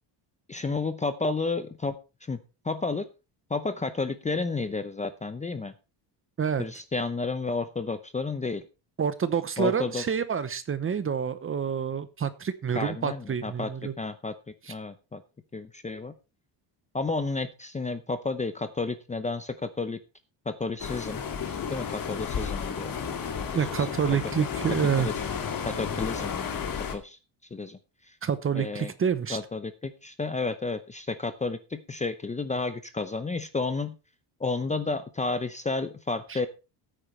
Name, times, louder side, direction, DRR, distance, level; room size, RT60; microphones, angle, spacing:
voice 1, 0.5-2.0 2.3-2.4 2.6-3.1 3.5-5.7 6.6-8.6 9.6-10.0 12.7-13.7 14.0-14.3 14.7-15.2 15.5-16.1 16.9-20.0 20.5-21.3 21.7-23.0 23.3-23.5 23.8-23.9 25.0-25.3 25.6-27.2 27.5-27.8 28.6-28.9 29.3-33.9 34.4-36.5, left 3 dB, 15° left, 10 dB, 0.7 m, -31 dB
voice 2, 9.0-13.9 14.6-14.7 23.5-25.1 28.2-29.4 36.3-36.4, right 7 dB, 25° right, 13 dB, 0.8 m, -28 dB
sound 1, 20.8-26.9, left 7 dB, 45° left, 2.3 m, -32 dB
15.0 x 8.9 x 3.2 m, 0.30 s
cardioid pair, 145°, 48 cm